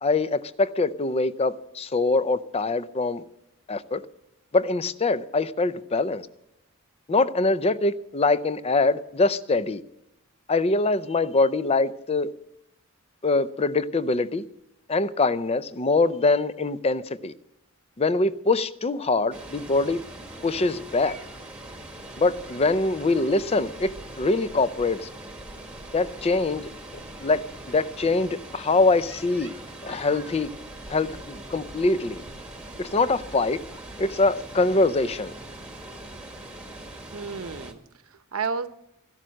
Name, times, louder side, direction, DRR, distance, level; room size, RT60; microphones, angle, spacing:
voice 1, 0.0-3.2 3.7-4.0 4.5-6.3 7.1-9.8 10.5-12.3 13.2-14.4 14.9-17.3 18.0-20.0 20.4-21.2 22.2-25.1 25.9-26.6 27.2-29.5 29.8-30.5 30.9-32.2 32.8-33.6 34.0-35.3, left 3 dB, 25° left, 0.5 m, -23 dB
Water, 19.3-37.7, right 1 dB, 5° right, 1.4 m, -41 dB
voice 2, 37.1-38.7, right 5 dB, 70° right, 0.8 m, -32 dB
14.0 x 12.0 x 6.4 m
head